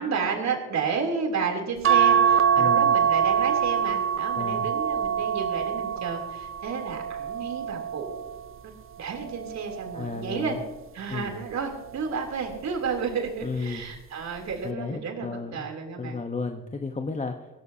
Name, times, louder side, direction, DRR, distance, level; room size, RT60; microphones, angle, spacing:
voice 1, 0.0-8.2 8.6-8.7 9.0-10.6 10.9-16.2, right 5 dB, 65° right, 2 dB, 3.3 m, -31 dB
sound 1, 1.8-8.5 9.1-10.5 11.7-12.2 12.5-12.6, right 8 dB, 45° right, 0.6 m, -25 dB
voice 2, 2.6-2.9 4.3-4.7 9.9-10.6 11.1-11.4 13.4-13.8 14.6-15.7 16.0-17.5, left 4 dB, 25° left, 4 dB, 1.1 m, -33 dB
20.0 x 16.5 x 2.8 m, 1.1 s
cardioid pair, 90°, 30 cm